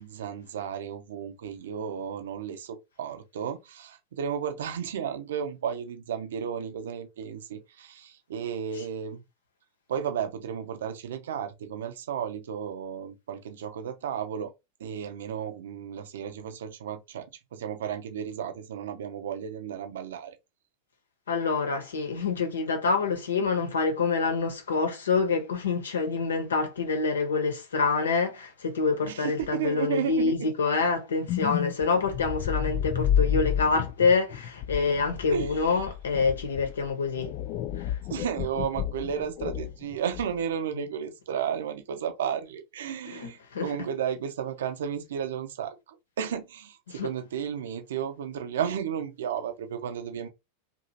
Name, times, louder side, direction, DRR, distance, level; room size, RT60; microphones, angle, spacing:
voice 1, 0.0-9.2 9.9-14.5 14.8-20.4 29.0-30.5 35.3-35.5 38.1-50.3, right 8 dB, 60° right, 0.6 m, -33 dB
voice 2, 21.3-37.3 37.8-38.0 43.1-43.7 46.9-47.1, left 4 dB, 65° left, 0.9 m, -26 dB
sound 1, 31.3-40.4, left 10 dB, 45° left, 0.4 m, -31 dB
2.8 x 2.6 x 2.7 m
figure-of-eight pair, 90°, 0 cm